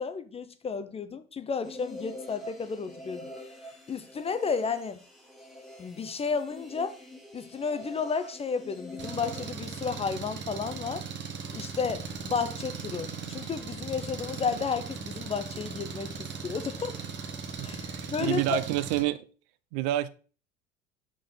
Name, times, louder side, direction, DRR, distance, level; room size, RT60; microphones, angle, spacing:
voice 1, 0.0-3.3 3.9-5.0 5.8-7.0 7.3-11.0 11.5-17.0 17.6-18.6, left 5 dB, 20° left, 0.5 m, -32 dB
sound 1, 1.6-9.5, left 1 dB, ahead, 1.4 m, -45 dB
Engine, 9.0-19.0, right 5 dB, 35° right, 1.2 m, -38 dB
voice 2, 17.6-19.2 19.7-20.1, right 15 dB, 50° right, 0.5 m, -29 dB
5.8 x 4.8 x 3.6 m
figure-of-eight pair, 65°, 34 cm